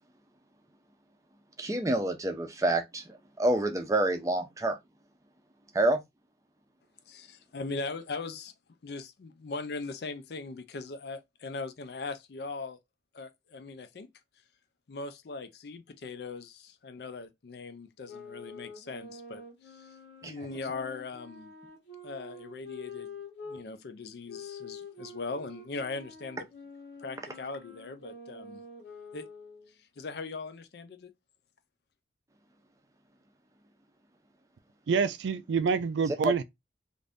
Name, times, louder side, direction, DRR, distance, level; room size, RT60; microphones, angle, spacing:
voice 1, 1.6-4.8 5.7-6.0 20.2-20.3 36.2-36.3, right 1 dB, 20° right, 0.5 m, -27 dB
voice 2, 7.1-8.5 8.8-12.8 13.1-14.1 14.9-20.0 20.2-21.5 22.0-23.2 23.4-26.5 27.0-28.6 29.1-29.3 30.0-31.1, left 3 dB, 60° left, 0.4 m, -40 dB
sound 1, 18.0-23.6 24.3-29.7, left 3 dB, 90° left, 1.2 m, -47 dB
voice 3, 34.9-36.4, right 5 dB, 80° right, 0.3 m, -27 dB
2.6 x 2.5 x 3.3 m
head